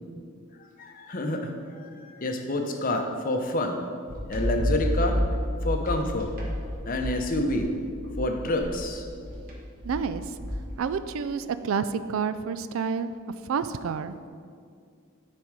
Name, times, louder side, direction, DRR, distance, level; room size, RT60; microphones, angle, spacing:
voice 1, 0.8-3.8 4.3-5.2 5.6-6.3 6.9-7.7 8.2-9.0, left 1 dB, 40° left, 4 dB, 0.7 m, -28 dB
sound 1, 4.1-10.9, equal, 45° right, 1.2 m, -30 dB
voice 2, 9.8-10.4 10.8-13.1 13.4-14.1, right 6 dB, 75° right, 12 dB, 0.4 m, -29 dB
10.0 x 4.3 x 4.7 m, 2.2 s
head